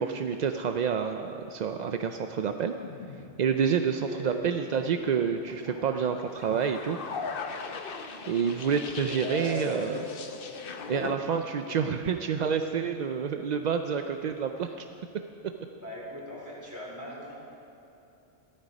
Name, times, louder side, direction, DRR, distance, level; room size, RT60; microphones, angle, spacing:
voice 1, 0.0-2.7 3.4-7.0 8.3-10.0 10.9-14.9, right 7 dB, 55° right, 6 dB, 0.5 m, -28 dB
sound 1, 2.8-3.6 5.2-11.1, left 5 dB, 55° left, 0.9 m, -39 dB
voice 2, 9.1-10.3 11.6-11.8 15.8-17.3, equal, 15° right, -6 dB, 4.2 m, -38 dB
14.5 x 13.0 x 5.2 m, 2.9 s
omnidirectional pair, 1.2 m